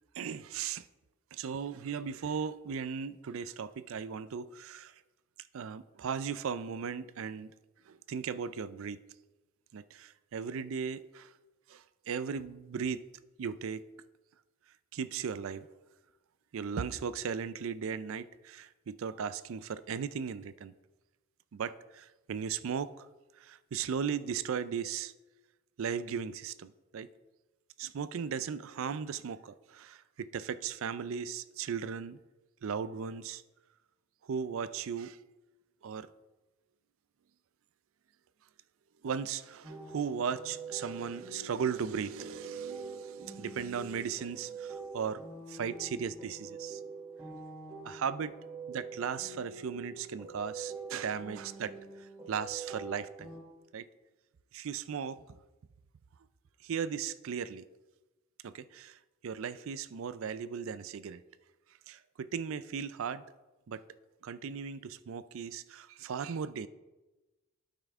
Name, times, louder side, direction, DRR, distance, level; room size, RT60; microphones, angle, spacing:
voice 1, 0.2-0.8 1.3-4.9 5.5-7.5 7.9-9.0 9.7-11.3 11.7-13.0 13.4-13.9 14.9-15.7 16.5-20.7 21.5-23.1 23.4-25.1 25.8-27.1 27.8-32.2 32.6-33.4 34.3-35.2 35.8-36.1 39.0-46.8 47.8-48.3 48.7-51.7 52.0-53.3 53.7-53.9 54.5-55.2 56.6-57.7 58.4-59.0 59.2-61.2 61.9-63.2 63.7-63.8 64.2-66.7, right 6 dB, 65° right, 15 dB, 0.4 m, -37 dB
sound 1, 39.6-53.4, right 4 dB, 15° right, 1.5 m, -45 dB
12.0 x 5.7 x 3.6 m, 1.1 s
head